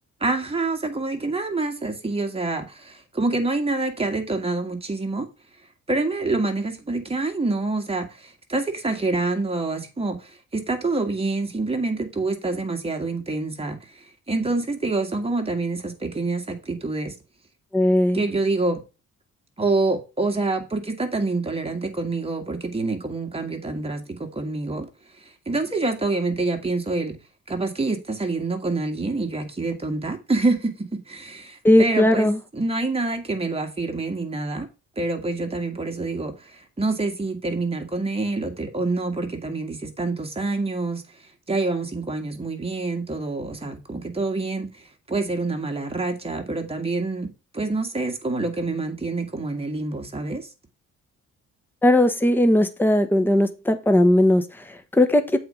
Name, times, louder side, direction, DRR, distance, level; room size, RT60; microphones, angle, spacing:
voice 1, 0.2-5.3 5.9-17.1 18.1-18.8 19.6-24.9 25.2-27.2 27.5-34.7 35.0-41.0 41.5-44.8 45.1-47.3 47.5-50.5, right 3 dB, 20° right, 2.0 m, -26 dB
voice 2, 17.7-18.2 31.6-32.4 51.8-55.4, left 1 dB, 5° left, 1.2 m, -18 dB
7.8 x 4.4 x 5.1 m
cardioid pair, 90°, 30 cm